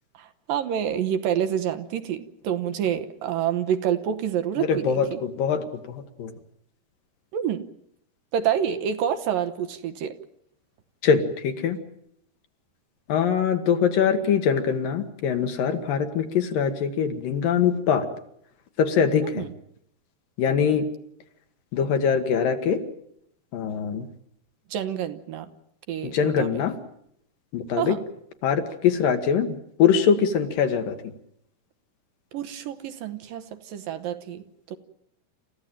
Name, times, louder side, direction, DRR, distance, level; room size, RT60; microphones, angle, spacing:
voice 1, 0.2-5.2 7.3-7.7 8.3-10.2 19.2-19.5 24.7-25.5 25.9-26.5 27.8-28.0 32.3-34.8, right 9 dB, 70° right, 9 dB, 2.6 m, -28 dB
voice 2, 4.6-6.3 11.0-11.8 13.1-18.1 18.8-19.5 20.4-20.9 21.7-22.8 23.5-24.1 26.0-26.7 27.5-28.0 28.4-31.1, left 7 dB, 65° left, 7 dB, 3.2 m, -23 dB
28.0 x 15.0 x 9.1 m, 0.73 s
omnidirectional pair, 4.5 m